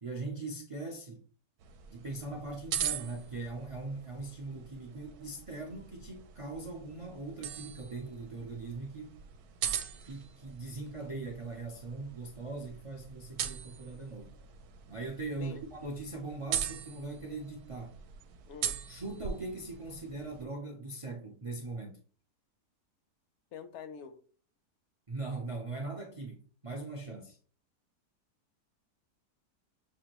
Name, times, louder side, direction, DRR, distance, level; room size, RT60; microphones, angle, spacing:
voice 1, 0.0-1.2 1.9-9.2 10.1-14.3 14.9-18.0 18.9-22.0 25.1-27.4, right 3 dB, 45° right, 0.4 m, -40 dB
sound 1, 1.6-20.4, right 8 dB, 80° right, 1.1 m, -41 dB
voice 2, 23.5-24.2, left 6 dB, 60° left, 0.8 m, -45 dB
6.6 x 2.6 x 3.0 m
omnidirectional pair, 1.6 m